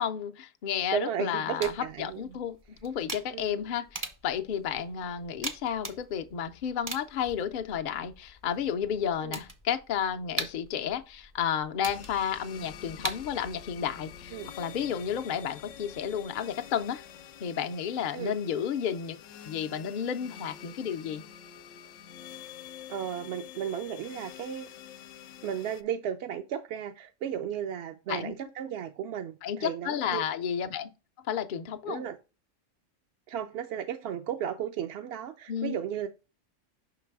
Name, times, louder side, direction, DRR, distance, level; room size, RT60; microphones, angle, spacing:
voice 1, 0.0-2.6 2.8-17.0 17.4-19.2 19.4-21.2 28.1-28.3 29.4-30.9 31.3-32.0 35.5-35.8, left 8 dB, 55° left, 0.5 m, -32 dB
voice 2, 0.9-2.4 3.3-3.6 9.2-9.4 14.3-14.5 18.1-18.3 22.9-24.7 25.4-30.2 31.9-32.2 33.3-36.1, right 9 dB, 65° right, 0.7 m, -34 dB
sound 1, 1.6-13.7, right 2 dB, 25° right, 0.5 m, -42 dB
sound 2, 11.8-25.8, left 9 dB, 80° left, 0.9 m, -47 dB
5.8 x 3.8 x 4.6 m
omnidirectional pair, 1.3 m